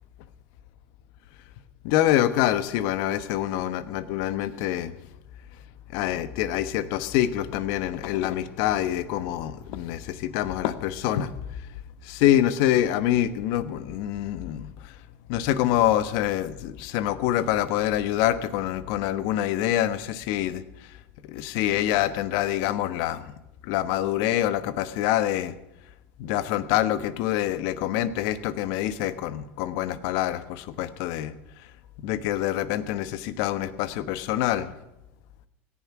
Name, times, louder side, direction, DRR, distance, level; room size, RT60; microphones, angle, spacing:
voice 1, 1.8-5.0 5.9-11.7 12.0-15.0 15.3-21.0 21.2-23.3 23.6-25.6 26.2-31.7 32.0-34.7, left 12 dB, 65° left, 14 dB, 1.1 m, -26 dB
17.0 x 11.5 x 6.0 m, 0.90 s
hypercardioid pair, 95°, 7 cm